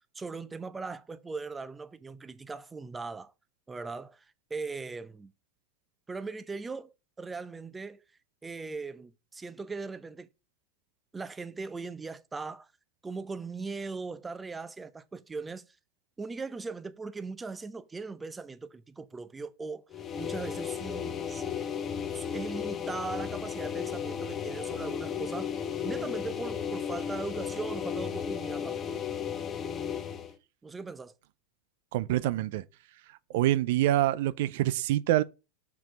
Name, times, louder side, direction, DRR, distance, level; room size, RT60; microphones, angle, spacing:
voice 1, 0.1-3.3 3.7-4.2 4.5-5.3 6.1-8.0 8.4-10.3 11.1-12.7 13.0-15.7 16.2-19.9 20.1-21.5 22.1-25.5 25.8-28.8 30.6-31.1, right 4 dB, 15° right, 0.7 m, -39 dB
sound 1, 19.9-30.3, left 8 dB, 30° left, 1.1 m, -34 dB
voice 2, 31.9-32.6 33.3-35.2, right 14 dB, 70° right, 0.5 m, -26 dB
5.9 x 4.8 x 5.3 m
hypercardioid pair, 110°, 0 cm